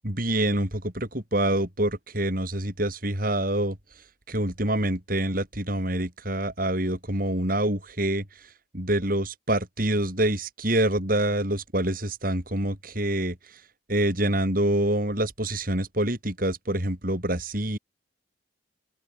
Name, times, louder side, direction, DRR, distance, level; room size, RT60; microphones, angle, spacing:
voice 1, 0.0-3.8 4.3-8.2 8.7-13.4 13.9-17.8, right 1 dB, 45° right, 4.6 m, -26 dB
open air
head